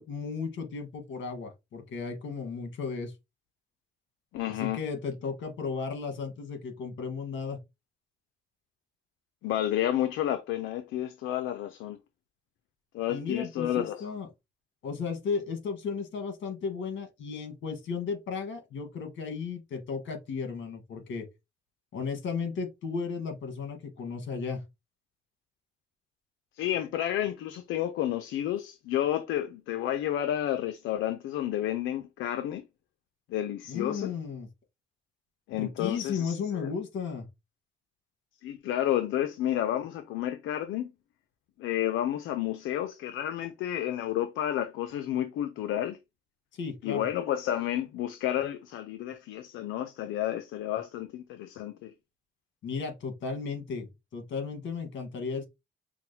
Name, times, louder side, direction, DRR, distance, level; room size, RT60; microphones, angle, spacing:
voice 1, 0.0-3.1 4.6-7.6 13.1-14.3 14.8-21.3 21.9-24.6 33.7-34.5 35.6-37.2 46.6-47.1 52.6-55.5, left 5 dB, 70° left, 1.6 m, -34 dB
voice 2, 4.3-4.8 9.4-12.0 12.9-14.2 26.6-32.6 33.3-34.1 35.5-36.7 38.4-40.9 41.6-46.0 46.8-51.9, left 12 dB, 90° left, 0.6 m, -31 dB
5.8 x 2.2 x 2.8 m
cardioid pair, 90°, 20 cm